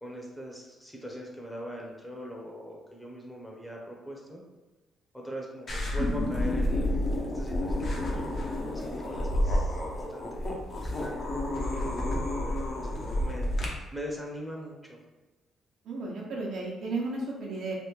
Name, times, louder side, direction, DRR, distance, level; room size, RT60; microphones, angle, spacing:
voice 1, 0.0-4.4 5.1-11.9 12.3-15.0, equal, 5° left, -1 dB, 0.7 m, -42 dB
sound 1, 5.7-13.7, left 1 dB, 50° left, 0.7 m, -30 dB
voice 2, 15.8-17.7, right 3 dB, 75° right, -2 dB, 0.8 m, -33 dB
3.3 x 2.1 x 3.1 m, 1.2 s
cardioid pair, 90°, 0 cm